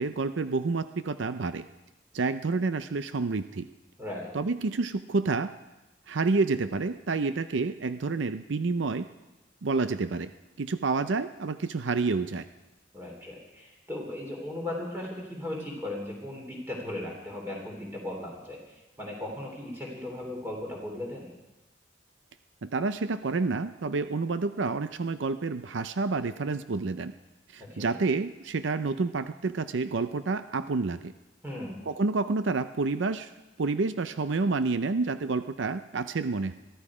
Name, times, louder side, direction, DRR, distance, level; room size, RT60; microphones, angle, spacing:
voice 1, 0.0-1.6 2.1-3.7 4.3-5.5 6.1-9.1 9.6-10.3 10.6-12.4 22.6-27.1 27.5-31.1 31.9-33.3 33.6-36.5, right 3 dB, 70° right, 11 dB, 0.6 m, -29 dB
voice 2, 4.0-4.3 12.9-21.3 27.6-27.9 31.4-31.7, left 1 dB, 10° right, -1 dB, 3.3 m, -37 dB
22.0 x 13.0 x 5.0 m, 1.0 s
head